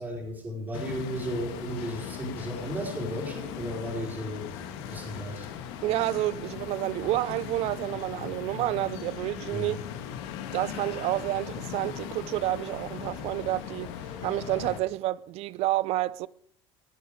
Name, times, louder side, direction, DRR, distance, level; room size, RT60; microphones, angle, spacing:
voice 1, 0.0-4.5 4.9-5.5 9.5-9.7, equal, 15° right, 4.8 m, -34 dB
sound 1, 0.7-14.8, left 9 dB, 70° left, 2.0 m, -39 dB
voice 2, 5.8-9.8 10.5-13.9 14.2-16.3, right 16 dB, 50° right, 0.6 m, -29 dB
19.5 x 8.7 x 5.2 m
supercardioid pair, 140°, 14 cm